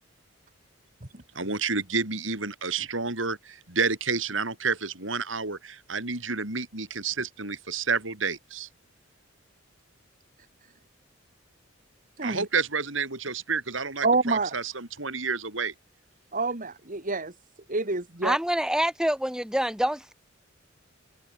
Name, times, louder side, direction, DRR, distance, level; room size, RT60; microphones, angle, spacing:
voice 1, 1.3-8.7 12.2-15.7, right 4 dB, 70° right, 5.1 m, -30 dB
voice 2, 14.0-14.5 16.3-17.3 17.7-18.4, right 3 dB, 45° right, 2.5 m, -27 dB
voice 3, 18.2-20.1, equal, 5° right, 7.9 m, -26 dB
head